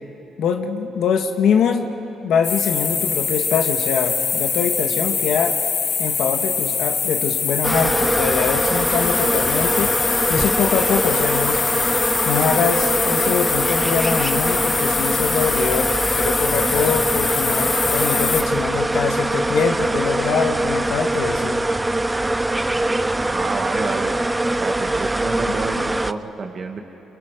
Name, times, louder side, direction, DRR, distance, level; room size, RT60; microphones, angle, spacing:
voice 1, 0.4-1.9 2.2-5.6 6.0-9.9 10.3-11.6 12.2-21.6, left 6 dB, 75° left, 4 dB, 1.5 m, -23 dB
sound 1, 2.4-18.4, left 6 dB, 55° left, 1.5 m, -23 dB
sound 2, 7.6-26.1, right 2 dB, 15° right, 0.6 m, -23 dB
voice 2, 23.2-24.3 24.6-26.8, right 4 dB, 45° right, 4 dB, 1.8 m, -29 dB
29.0 x 26.5 x 5.1 m, 2.9 s
cardioid pair, 90°, 0 cm